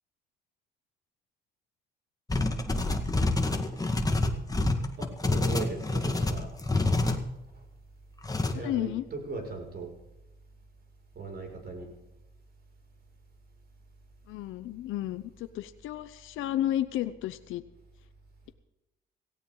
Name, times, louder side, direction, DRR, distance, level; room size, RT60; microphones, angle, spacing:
sound 1, 2.3-7.2 8.2-8.5, left 2 dB, 20° left, 1.9 m, -27 dB
voice 1, 5.0-6.6 7.5-7.6 8.5-9.9 11.1-11.9, right 3 dB, 50° right, 2 dB, 6.2 m, -38 dB
voice 2, 8.5-9.1 14.3-17.6, left 13 dB, 90° left, 11 dB, 0.8 m, -32 dB
17.5 x 16.0 x 3.9 m, 0.95 s
cardioid pair, 90°, 20 cm